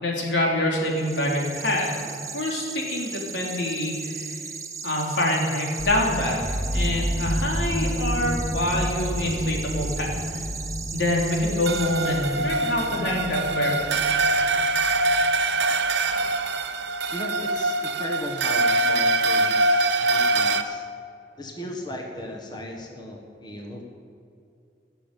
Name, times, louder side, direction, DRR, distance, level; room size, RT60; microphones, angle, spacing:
voice 1, 0.0-1.9 2.3-4.3 4.8-10.4 10.9-13.9, left 1 dB, 90° left, -2 dB, 3.4 m, -26 dB
sound 1, 0.8-12.6, right 5 dB, 20° right, 0.8 m, -37 dB
sound 2, 5.8-15.6, equal, 10° left, 2.1 m, -31 dB
sound 3, 11.7-20.6, right 2 dB, 70° right, 0.8 m, -23 dB
voice 2, 17.1-20.8 21.4-23.8, left 1 dB, 25° left, 1 dB, 1.5 m, -36 dB
17.5 x 7.0 x 9.2 m, 2.4 s
head